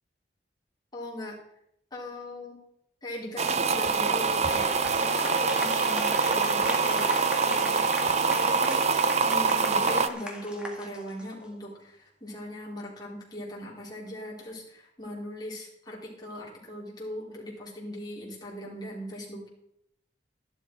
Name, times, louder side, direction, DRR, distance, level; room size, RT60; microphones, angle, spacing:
voice 1, 0.9-1.4 1.9-2.6 3.0-7.9 8.2-19.5, left 1 dB, 25° left, -4 dB, 3.8 m, -39 dB
sound 1, 3.4-10.1, right 5 dB, 35° right, 0.5 m, -25 dB
Applause, 3.9-11.4, equal, 5° right, 1.9 m, -38 dB
12.5 x 11.5 x 4.6 m, 0.76 s
head